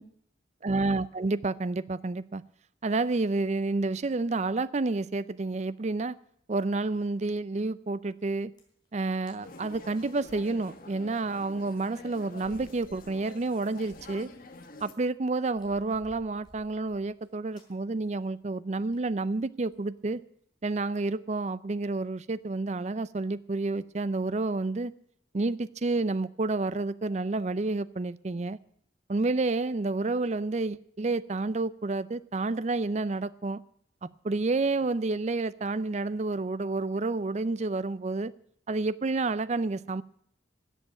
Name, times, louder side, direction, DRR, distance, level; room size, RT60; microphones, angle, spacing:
voice 1, 0.6-2.4 2.8-6.2 6.5-8.5 8.9-14.3 14.8-20.2 20.6-24.9 25.3-28.6 29.1-33.6 34.0-38.3 38.7-40.0, right 3 dB, 40° right, 17 dB, 0.5 m, -29 dB
sound 1, 8.2-8.3 8.5-8.9 9.3-9.4 9.6-11.2 11.5-11.6 12.4-14.4 14.6-14.9 15.5-17.3 17.5-17.7 18.0-18.2 18.5-18.6 18.9-19.2 19.6-19.8, equal, 25° left, 3.6 m, -57 dB
sound 2, 9.4-14.9, left 2 dB, 50° left, 1.3 m, -48 dB
14.0 x 7.9 x 9.0 m, 0.71 s
head